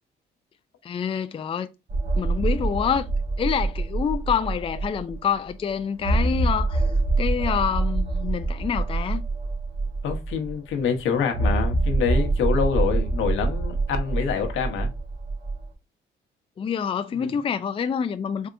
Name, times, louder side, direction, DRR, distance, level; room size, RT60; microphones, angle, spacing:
voice 1, 0.8-1.7 2.2-3.1 3.4-6.9 7.2-9.2 16.6-18.5, left 7 dB, 30° left, 0.4 m, -27 dB
sound 1, 1.9-5.2 5.5-5.6 6.0-10.5 11.3-15.6, right 3 dB, 40° right, 1.3 m, -25 dB
voice 2, 10.0-14.9 17.1-17.3, left 6 dB, 85° left, 1.0 m, -26 dB
4.2 x 3.5 x 2.5 m
cardioid pair, 90°, 20 cm